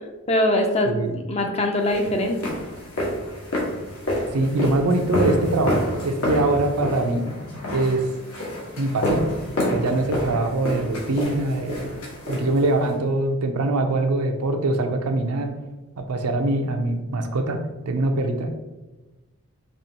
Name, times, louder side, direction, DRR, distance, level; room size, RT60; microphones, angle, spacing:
voice 1, 0.3-1.0 1.3-2.6, left 1 dB, 30° left, 4 dB, 0.5 m, -22 dB
voice 2, 0.9-1.2 4.3-7.2 7.7-8.0 8.8-9.2 9.7-11.9 12.3-15.5 16.0-18.6, right 2 dB, 90° right, 5 dB, 0.6 m, -23 dB
sound 1, 1.8-13.0, left 1 dB, 75° left, 1.5 m, -28 dB
5.5 x 3.0 x 2.9 m, 1.1 s
head